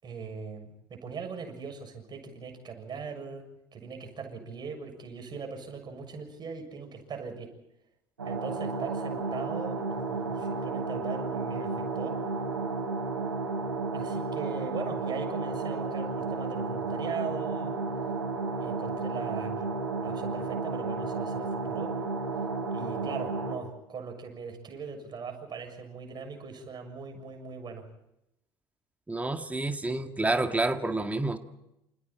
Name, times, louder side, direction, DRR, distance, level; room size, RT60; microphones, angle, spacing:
voice 1, 0.0-7.5 8.2-12.2 13.9-17.8 18.6-19.6 20.0-22.0 22.7-27.8, right 5 dB, 35° right, 5 dB, 7.0 m, -40 dB
sound 1, 8.2-23.6, right 3 dB, 85° right, 3.7 m, -32 dB
voice 2, 29.1-31.4, right 2 dB, 10° right, 7 dB, 2.0 m, -29 dB
28.5 x 28.0 x 4.4 m, 0.86 s
figure-of-eight pair, 60°, 12 cm